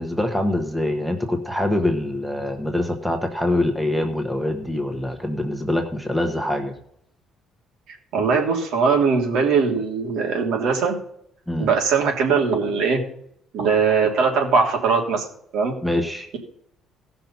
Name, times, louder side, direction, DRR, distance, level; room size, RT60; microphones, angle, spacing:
voice 1, 0.0-6.7 11.5-11.7 15.8-16.3, left 1 dB, ahead, 4 dB, 1.2 m, -24 dB
voice 2, 8.1-10.9 11.6-13.0 13.5-15.3 15.5-15.8, right 5 dB, 75° right, 1 dB, 3.0 m, -20 dB
15.5 x 6.0 x 5.5 m, 0.70 s
cardioid pair, 130°, 0 cm